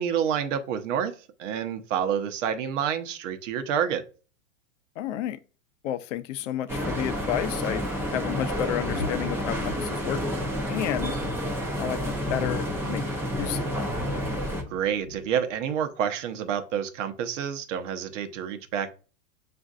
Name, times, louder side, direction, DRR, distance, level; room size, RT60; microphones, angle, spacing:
voice 1, 0.0-4.0 14.7-18.9, right 8 dB, 60° right, 0.8 m, -28 dB
voice 2, 5.0-5.4 5.8-7.9 8.1-10.2 10.7-11.2 11.8-13.0 13.4-13.9, left 12 dB, 60° left, 0.5 m, -31 dB
sound 1, 6.7-14.6, equal, 5° right, 0.4 m, -30 dB
sound 2, 8.8-15.6, left 4 dB, 35° left, 0.8 m, -40 dB
6.9 x 2.5 x 2.4 m
hypercardioid pair, 125°, 42 cm